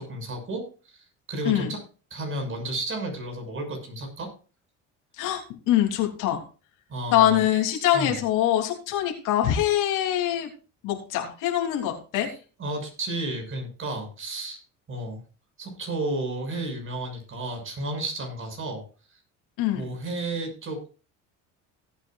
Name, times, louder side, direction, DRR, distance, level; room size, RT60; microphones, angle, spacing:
voice 1, 0.0-1.8 2.1-4.3 6.9-7.4 7.9-8.2 12.3-14.6 14.9-15.2 15.6-18.8 19.7-20.9, right 2 dB, 40° right, 3 dB, 6.1 m, -32 dB
voice 2, 5.2-6.4 7.1-10.5 10.8-12.3 19.6-19.8, left 12 dB, 80° left, 2 dB, 3.2 m, -24 dB
17.5 x 8.8 x 2.4 m, 0.34 s
cardioid pair, 105°, 31 cm